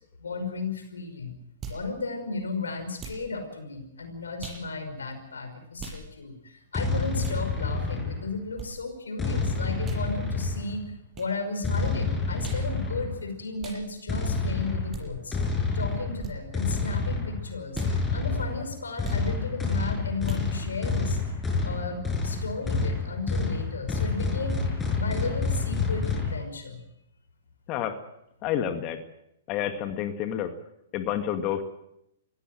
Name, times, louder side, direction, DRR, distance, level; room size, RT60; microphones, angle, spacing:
voice 1, 0.2-1.3 1.7-10.8 11.1-15.4 15.7-21.2 21.6-26.8, left 3 dB, 85° left, 7 dB, 5.6 m, -34 dB
sound 1, 1.6-1.8 3.0-3.3 4.4-4.6 5.8-6.0 7.2-7.4 8.6-8.7 9.8-10.0 11.1-11.3 12.4-12.7 13.6-13.8 14.9-15.1 16.2-16.4 17.7-17.9 19.0-19.2 20.2-20.5, right 5 dB, 25° right, 7.7 m, -39 dB
sound 2, 6.7-8.5 9.2-10.9 11.6-13.3 14.1-26.3, left 4 dB, 15° left, 6.6 m, -28 dB
voice 2, 28.4-29.0 29.5-30.5 30.9-31.6, left 10 dB, 35° left, 7 dB, 2.1 m, -29 dB
23.5 x 16.5 x 7.8 m, 0.80 s
hypercardioid pair, 125°, 0 cm